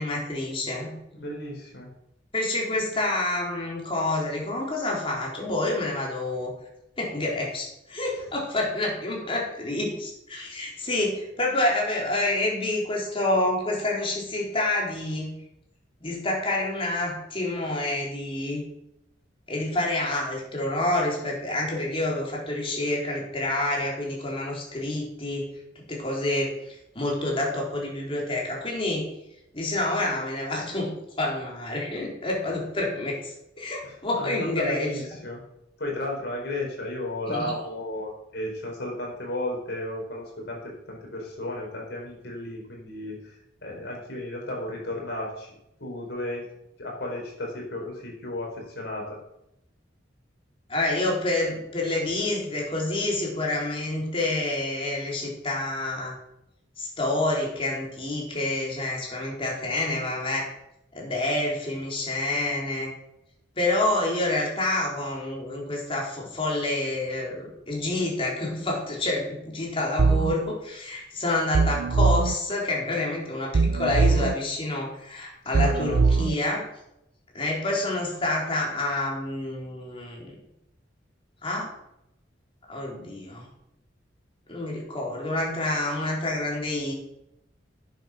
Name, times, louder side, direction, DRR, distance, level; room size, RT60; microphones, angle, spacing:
voice 1, 0.0-0.9 2.3-6.5 7.0-15.4 16.0-18.6 19.5-25.5 25.9-29.1 29.5-34.9 37.3-37.5 50.7-56.2 56.8-60.4 60.9-62.9 63.6-76.6 77.3-80.4 81.4-81.7 82.7-83.5 84.5-86.9, left 2 dB, 30° left, -3 dB, 3.8 m, -28 dB
voice 2, 1.1-1.9 33.8-35.4 35.8-43.3 43.6-46.4 46.8-49.0 75.5-76.0, left 1 dB, 65° left, -1 dB, 5.0 m, -34 dB
sound 1, 70.0-70.3 71.5-72.3 73.5-74.3 75.5-76.3, right 4 dB, 85° right, 0.5 m, -21 dB
10.5 x 8.3 x 6.2 m, 0.82 s
head